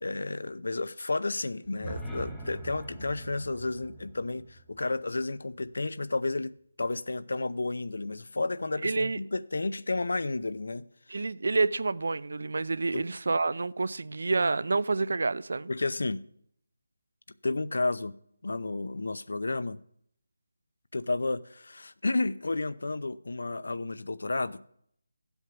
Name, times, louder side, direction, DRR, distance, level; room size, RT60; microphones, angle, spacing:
voice 1, 0.0-11.2 12.9-13.0 15.7-16.2 17.4-18.2 18.4-19.8 20.9-24.6, left 2 dB, 70° left, 0.7 m, -32 dB
sound 1, 1.6-5.7, right 1 dB, ahead, 0.9 m, -43 dB
voice 2, 8.8-9.2 11.1-15.7, right 3 dB, 55° right, 0.5 m, -28 dB
14.0 x 8.0 x 5.9 m
figure-of-eight pair, 175°, 0 cm